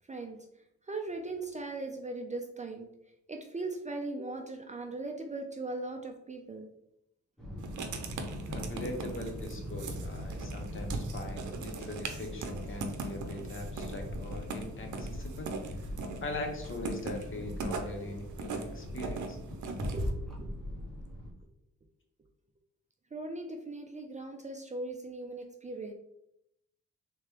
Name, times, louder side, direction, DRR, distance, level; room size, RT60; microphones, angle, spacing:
voice 1, 0.9-2.9 3.3-6.7 19.9-20.5 23.1-25.9, right 2 dB, 25° right, 4 dB, 0.4 m, -39 dB
sound 1, 7.4-21.3, equal, ahead, 0.9 m, -41 dB
Writing, 7.6-20.1, right 4 dB, 75° right, 0.6 m, -41 dB
voice 2, 8.5-15.5 16.2-19.4, left 2 dB, 45° left, 3 dB, 0.8 m, -41 dB
3.3 x 3.2 x 3.2 m, 0.79 s
wide cardioid pair, 115°, 30 cm